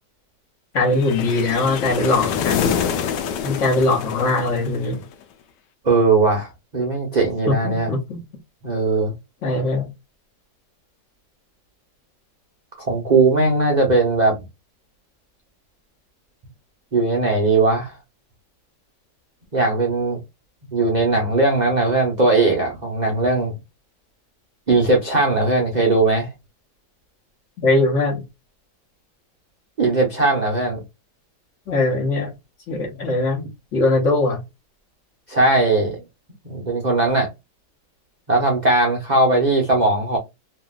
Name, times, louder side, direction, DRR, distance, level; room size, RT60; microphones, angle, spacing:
voice 1, 0.7-2.8 3.4-5.0 7.5-8.2 9.4-9.9 27.6-28.2 31.7-32.3 32.7-33.5 33.7-34.4, left 2 dB, 55° left, 1.0 m, -21 dB
sound 1, 0.9-5.1, left 8 dB, 80° left, 1.2 m, -26 dB
voice 2, 5.8-7.9 8.6-9.1 12.8-14.4 16.9-17.9 19.5-20.2 20.7-23.6 24.7-26.3 29.8-30.8 35.3-36.0 36.4-37.3 38.3-40.2, right 3 dB, 75° right, 0.4 m, -19 dB
2.8 x 2.6 x 2.3 m
omnidirectional pair, 1.9 m